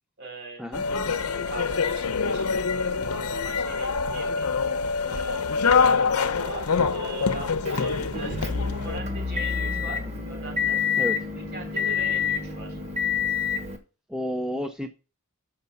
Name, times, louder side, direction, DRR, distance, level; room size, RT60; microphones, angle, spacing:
voice 1, 0.2-0.6 1.5-4.5 5.0-5.5 6.3-8.5 8.8-10.8 11.4-12.8, right 3 dB, 50° right, 3.0 m, -41 dB
sound 1, 0.7-9.0, left 5 dB, 90° left, 0.8 m, -25 dB
Motor vehicle (road) / Engine, 7.7-13.8, left 6 dB, 30° right, 1.5 m, -28 dB
voice 2, 14.1-14.9, equal, 5° right, 0.5 m, -30 dB
6.7 x 5.7 x 6.9 m
head